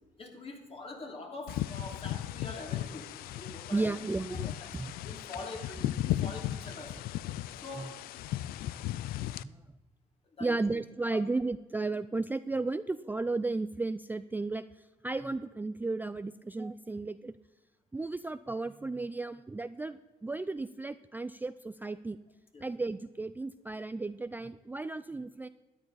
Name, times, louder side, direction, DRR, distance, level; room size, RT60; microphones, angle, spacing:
voice 1, 0.2-4.0 4.4-4.7 5.0-7.0 7.6-8.0 10.4-10.6 11.1-11.2 22.5-22.7, left 3 dB, 40° left, 2 dB, 2.8 m, -44 dB
sound 1, 1.5-9.4, left 14 dB, 80° left, 0.4 m, -36 dB
voice 2, 3.7-4.9 7.7-7.9 9.4-9.5 10.4-17.3 17.9-22.2 22.6-25.5, right 3 dB, 10° right, 12 dB, 0.3 m, -34 dB
13.0 x 9.9 x 4.1 m, 1.1 s
cardioid pair, 80°, 15 cm